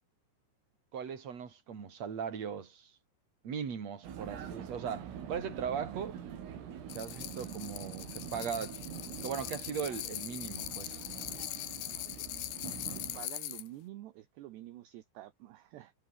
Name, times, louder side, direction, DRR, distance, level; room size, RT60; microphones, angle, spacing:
voice 1, 0.9-2.9 3.4-6.2 6.9-8.8 9.2-11.0, right 7 dB, 35° right, 4.1 m, -38 dB
Vehicle, 4.0-13.3, right 8 dB, 85° right, 6.3 m, -45 dB
sound 1, 6.9-13.7, left 15 dB, 70° left, 2.5 m, -41 dB
voice 2, 12.9-15.9, right 14 dB, 70° right, 3.1 m, -48 dB
omnidirectional pair, 5.7 m